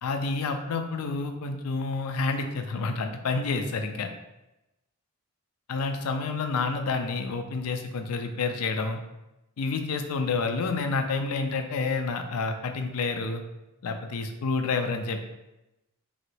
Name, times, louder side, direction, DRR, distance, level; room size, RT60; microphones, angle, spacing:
voice 1, 0.0-4.1 5.7-9.0 9.6-13.4 13.8-15.2, left 4 dB, 85° left, 6 dB, 0.4 m, -29 dB
3.1 x 2.9 x 2.7 m, 0.95 s
head